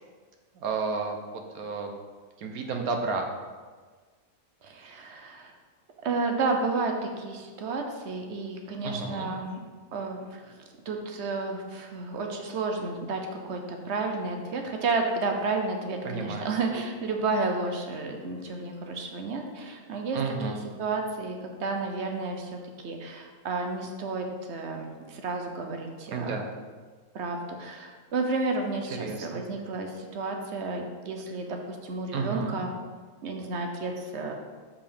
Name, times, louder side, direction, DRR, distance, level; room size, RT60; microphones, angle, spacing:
voice 1, 0.5-1.9 2.4-3.3 8.8-9.3 16.0-16.5 20.1-20.6 26.1-26.5 29.0-29.4 32.1-32.6, right 4 dB, 80° right, 4 dB, 1.3 m, -31 dB
voice 2, 4.6-5.5 6.0-9.6 9.9-10.6 10.8-20.2 20.5-26.4 27.1-32.7 33.2-34.3, right 3 dB, 55° right, 3 dB, 1.0 m, -31 dB
5.7 x 4.9 x 5.1 m, 1.5 s
omnidirectional pair, 1.5 m